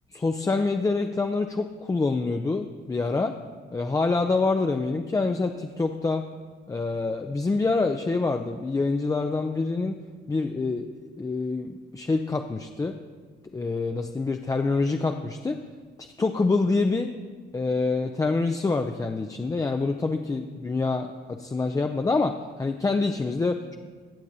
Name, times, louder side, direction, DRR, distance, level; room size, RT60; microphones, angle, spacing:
voice 1, 0.1-3.3 3.7-6.2 6.7-10.0 10.3-10.9 11.2-12.9 13.5-15.6 16.0-17.1 17.5-23.7, left 3 dB, 15° left, 5 dB, 0.4 m, -26 dB
17.5 x 7.3 x 2.7 m, 1.6 s
cardioid pair, 90°, 20 cm